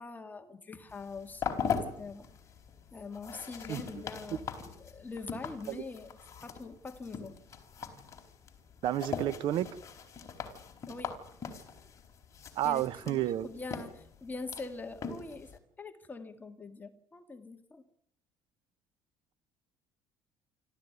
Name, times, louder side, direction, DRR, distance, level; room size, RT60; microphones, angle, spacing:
voice 1, 0.0-1.5 1.9-2.3 2.9-7.4 10.9-11.2 12.6-15.5 15.8-17.8, left 3 dB, 20° left, 6 dB, 2.0 m, -44 dB
sound 1, 0.9-15.6, left 6 dB, 35° left, 4.1 m, -41 dB
voice 2, 3.7-4.0 5.7-5.8 8.8-9.7 12.6-13.5, right 13 dB, 65° right, 18 dB, 1.1 m, -31 dB
26.0 x 14.0 x 9.5 m, 0.74 s
cardioid pair, 115°, 9 cm